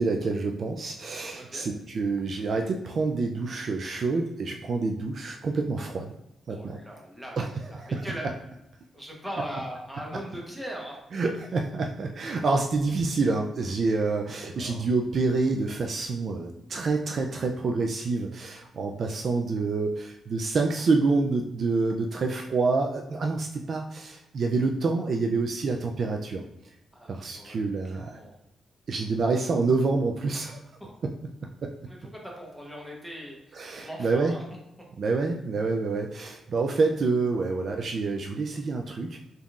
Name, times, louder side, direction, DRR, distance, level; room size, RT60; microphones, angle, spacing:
voice 1, 0.0-6.1 6.5-6.8 7.4-7.5 7.8-8.1 11.1-26.5 27.1-28.2 28.9-30.6 31.0-31.1 31.6-31.7 33.5-34.3 35.0-39.2, right 3 dB, 50° right, 2 dB, 0.3 m, -27 dB
voice 2, 1.4-1.7 6.5-8.2 8.9-11.0 14.5-14.9 26.9-28.4 30.8-30.9 31.9-34.4, equal, 5° right, -2 dB, 1.0 m, -40 dB
4.0 x 3.6 x 2.4 m, 0.88 s
cardioid pair, 125°, 0 cm